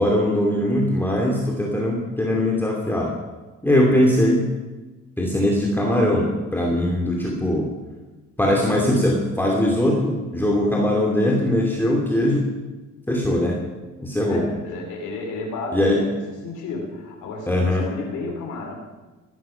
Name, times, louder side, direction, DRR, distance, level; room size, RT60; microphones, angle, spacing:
voice 1, 0.0-3.1 3.6-4.5 5.2-7.7 8.4-12.5 13.1-13.6 14.0-14.4 15.7-16.0 17.5-17.9, left 1 dB, 5° left, -1 dB, 2.8 m, -20 dB
voice 2, 14.3-18.7, left 3 dB, 80° left, 0 dB, 2.9 m, -33 dB
16.0 x 13.0 x 5.8 m, 1.2 s
cardioid pair, 90°, 30 cm